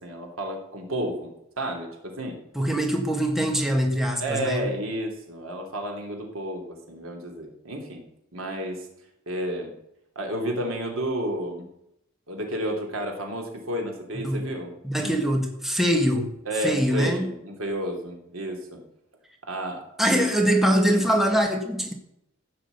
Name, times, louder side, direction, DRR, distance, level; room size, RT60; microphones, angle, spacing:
voice 1, 0.0-2.4 4.2-8.0 8.3-8.9 9.3-9.7 10.1-11.7 12.3-14.7 15.0-15.2 16.4-18.8 19.5-20.3, right 1 dB, 75° right, 3.1 m, -31 dB
voice 2, 2.5-4.7 14.2-14.5 14.8-16.3 16.6-17.3 20.0-21.9, equal, ahead, 1.6 m, -23 dB
15.0 x 6.2 x 8.1 m
head